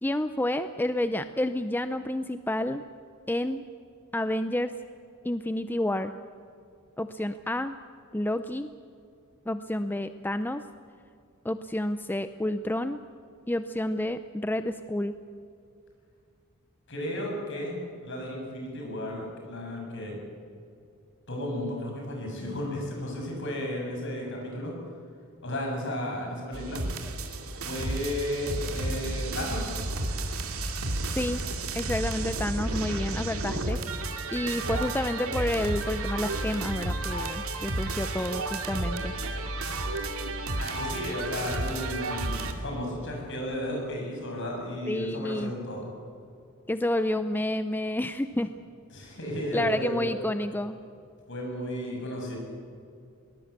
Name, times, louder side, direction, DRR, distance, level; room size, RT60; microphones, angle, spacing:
voice 1, 0.0-2.8 3.3-3.6 4.1-4.7 5.2-6.1 7.0-7.8 8.1-8.7 9.5-10.6 11.4-13.0 13.5-15.1 31.1-31.4 31.8-33.8 34.3-39.1 44.9-45.5 46.7-48.5 49.5-50.8, left 1 dB, 10° left, 10 dB, 0.5 m, -29 dB
voice 2, 16.9-17.8 18.0-20.2 21.3-24.7 25.4-26.8 27.6-29.8 40.5-45.9 48.9-50.0 51.3-52.4, left 1 dB, 55° left, 0 dB, 7.3 m, -33 dB
sound 1, 26.5-42.5, right 2 dB, 75° right, 2.4 m, -32 dB
22.0 x 19.5 x 8.2 m, 2.5 s
head